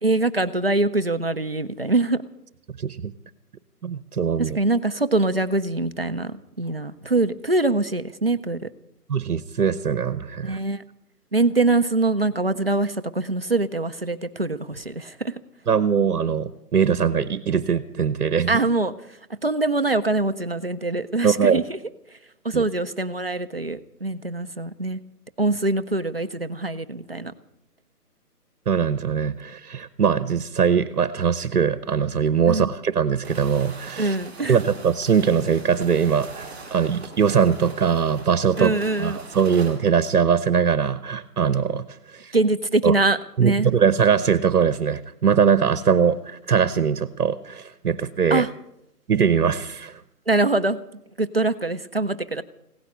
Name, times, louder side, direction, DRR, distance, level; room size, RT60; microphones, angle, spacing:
voice 1, 0.0-2.2 4.4-8.7 10.4-10.8 11.3-15.3 18.5-18.9 19.4-21.8 22.4-25.0 25.4-27.3 32.5-32.7 34.0-34.6 38.6-39.2 42.3-43.7 48.3-48.5 50.3-50.8 51.2-52.4, right 2 dB, 40° right, 10 dB, 0.5 m, -23 dB
voice 2, 2.8-3.1 3.8-4.6 9.1-10.6 15.7-18.6 21.2-21.6 22.5-22.6 28.7-34.2 34.5-42.3 42.8-42.9 43.4-48.5 49.1-50.0, right 7 dB, 65° right, 15 dB, 0.9 m, -21 dB
sound 1, 33.2-39.8, right 3 dB, ahead, 1.3 m, -42 dB
16.5 x 10.0 x 8.4 m, 0.81 s
hypercardioid pair, 175°, 48 cm